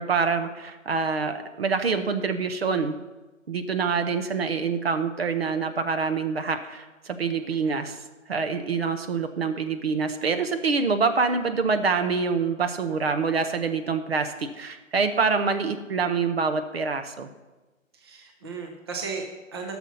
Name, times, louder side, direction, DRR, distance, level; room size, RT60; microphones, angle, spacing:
voice 1, 0.0-3.0 3.5-8.0 8.3-17.3, right 5 dB, 50° right, 8 dB, 0.9 m, -26 dB
voice 2, 7.5-7.9 17.9-19.8, right 4 dB, 20° right, 2 dB, 0.7 m, -36 dB
11.5 x 6.2 x 5.6 m, 1.1 s
figure-of-eight pair, 150°, 40 cm